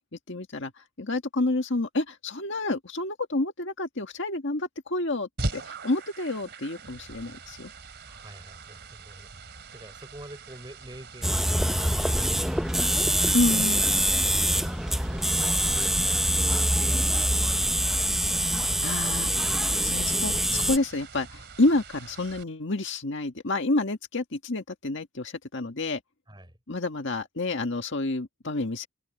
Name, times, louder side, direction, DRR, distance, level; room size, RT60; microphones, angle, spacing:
voice 1, 0.3-7.7 13.3-14.0 18.8-19.3 19.8-26.0 26.7-28.9, left 2 dB, 55° left, 1.8 m, -29 dB
sound 1, 5.4-22.4, right 3 dB, 50° right, 2.9 m, -42 dB
voice 2, 8.1-13.4 14.2-18.6 26.3-26.6, right 1 dB, 20° right, 6.0 m, -48 dB
sound 2, 11.2-20.8, right 1 dB, ahead, 0.7 m, -24 dB
open air
head